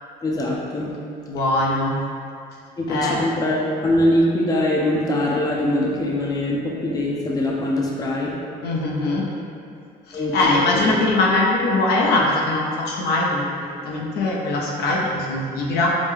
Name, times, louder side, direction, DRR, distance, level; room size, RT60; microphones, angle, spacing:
voice 1, 0.2-0.9 2.8-3.6 3.8-8.3 10.1-11.0, left 1 dB, 20° left, -3 dB, 0.6 m, -22 dB
voice 2, 1.3-2.0 2.9-3.2 8.6-9.3 10.1-15.9, left 2 dB, 75° left, -3 dB, 0.7 m, -21 dB
5.1 x 2.1 x 3.3 m, 2.4 s
cardioid pair, 110°, 17 cm